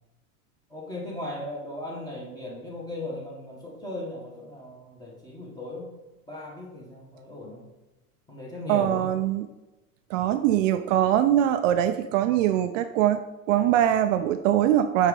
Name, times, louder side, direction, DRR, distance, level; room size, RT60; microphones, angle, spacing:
voice 1, 0.7-5.9 6.3-7.7 8.3-9.1, left 1 dB, 10° left, -3 dB, 1.8 m, -37 dB
voice 2, 8.7-9.5 10.1-13.2 13.5-15.1, right 11 dB, 60° right, 9 dB, 0.5 m, -22 dB
5.0 x 4.6 x 5.3 m, 1.1 s
hypercardioid pair, 120°, 44 cm